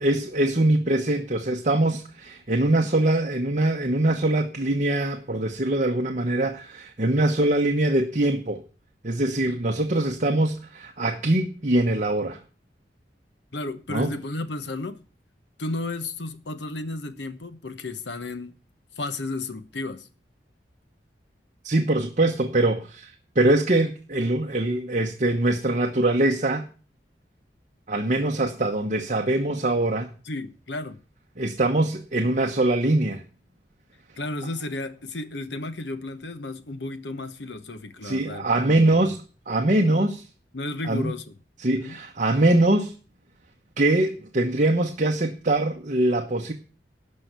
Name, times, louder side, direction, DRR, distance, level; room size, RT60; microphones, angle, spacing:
voice 1, 0.0-8.6 9.0-12.4 13.9-14.1 21.6-26.7 27.9-30.1 31.4-33.2 38.0-39.2 39.5-40.2 40.9-41.1 41.6-42.9 43.8-46.5, right 1 dB, 45° right, 1.0 m, -23 dB
voice 2, 13.5-15.0 15.6-18.6 19.0-20.1 30.2-31.0 34.2-39.1 39.8-40.1 40.5-41.3 41.7-42.0, left 2 dB, 85° left, 1.1 m, -33 dB
12.0 x 5.6 x 8.1 m
head